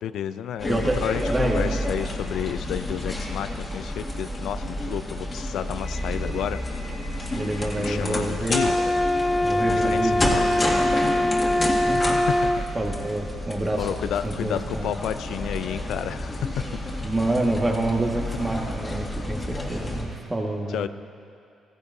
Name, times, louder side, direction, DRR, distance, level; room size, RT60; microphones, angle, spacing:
voice 1, 0.0-6.6 7.8-8.8 9.3-10.5 12.3-12.7 13.8-16.6 20.7-20.9, left 10 dB, 80° left, 13 dB, 0.4 m, -31 dB
sound 1, 0.6-20.1, left 1 dB, 25° left, 2.1 m, -30 dB
voice 2, 1.2-1.6 7.3-8.6 9.4-11.0 11.4-12.2 12.7-13.9 14.2-14.9 17.0-20.9, right 1 dB, 20° right, 0 dB, 1.6 m, -28 dB
sound 2, 8.5-12.6, left 1 dB, 5° left, 0.5 m, -22 dB
16.0 x 15.0 x 2.7 m, 2.6 s
cardioid pair, 90°, 0 cm